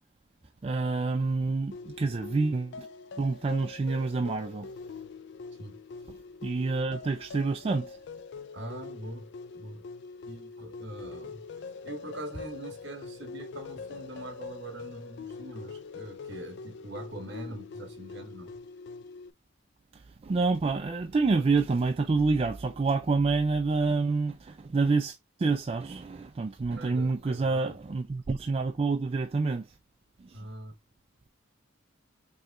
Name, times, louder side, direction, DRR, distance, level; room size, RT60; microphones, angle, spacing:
voice 1, 0.6-2.9 3.2-4.7 6.1-6.2 6.4-8.0 19.9-29.7 30.2-30.4, right 3 dB, 30° right, 0.3 m, -28 dB
sound 1, 1.7-19.3, left 4 dB, 60° left, 0.3 m, -44 dB
voice 2, 8.5-9.9 10.2-18.5 26.7-27.8 30.3-30.7, right 1 dB, 60° right, 1.3 m, -43 dB
5.4 x 3.0 x 2.4 m
head